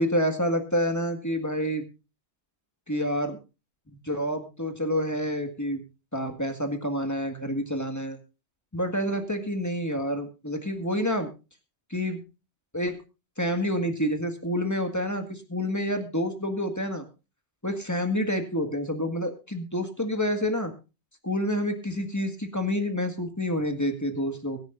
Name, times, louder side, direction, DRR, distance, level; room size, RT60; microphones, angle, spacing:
voice 1, 0.0-1.8 2.9-3.4 4.0-5.8 6.1-8.2 8.7-11.3 11.9-12.2 12.7-13.0 13.4-17.0 17.6-20.7 21.2-24.6, equal, 15° left, 5 dB, 1.8 m, -28 dB
22.5 x 10.5 x 2.5 m, 0.29 s
omnidirectional pair, 1.1 m